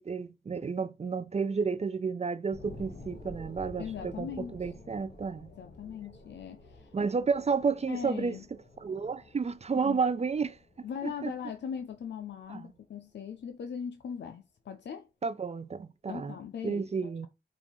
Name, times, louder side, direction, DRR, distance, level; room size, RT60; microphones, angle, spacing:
voice 1, 0.0-5.5 6.9-8.4 8.8-11.3 12.5-12.6 15.2-16.4 16.6-17.3, right 5 dB, 40° right, 0.4 m, -31 dB
sound 1, 2.5-13.5 14.0-14.1, left 2 dB, 60° left, 1.4 m, -51 dB
voice 2, 3.8-4.6 5.5-6.9 7.9-8.5 9.8-10.0 10.8-15.1 16.1-17.3, left 7 dB, 85° left, 0.4 m, -40 dB
5.2 x 2.5 x 3.0 m
wide cardioid pair, 65°, 18 cm